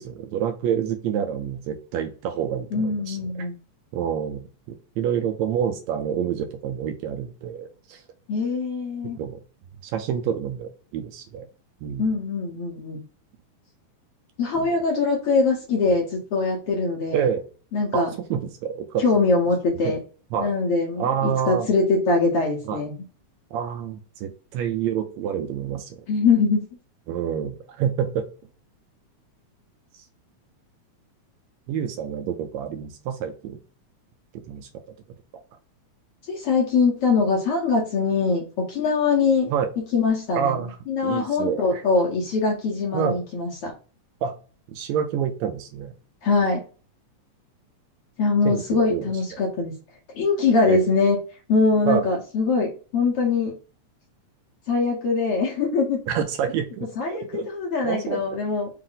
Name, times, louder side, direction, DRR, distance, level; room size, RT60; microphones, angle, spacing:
voice 1, 0.0-3.5 3.9-8.0 9.2-9.4 9.8-11.5 11.8-12.1 14.5-14.8 17.1-17.4 17.9-18.0 18.3-19.0 19.8-20.0 20.3-20.5 21.0-21.7 22.7-22.8 23.5-26.0 27.1-28.2 31.7-33.6 34.3-34.7 39.5-39.7 40.3-40.8 41.0-41.8 42.9-43.2 44.2-44.3 44.7-45.9 48.4-49.4 50.6-50.9 51.9-52.1 56.1-57.5 57.8-58.4, right 8 dB, 80° right, 6 dB, 1.7 m, -28 dB
voice 2, 2.7-3.6 8.3-9.2 12.0-13.0 14.4-17.3 17.7-18.1 19.0-20.0 20.4-22.9 26.1-26.6 36.3-39.5 39.9-40.6 40.9-43.7 46.2-46.6 48.2-49.7 50.1-51.2 51.5-53.5 54.7-56.0 57.0-58.7, left 4 dB, 65° left, -1 dB, 1.5 m, -22 dB
4.8 x 2.5 x 3.7 m, 0.37 s
omnidirectional pair, 3.3 m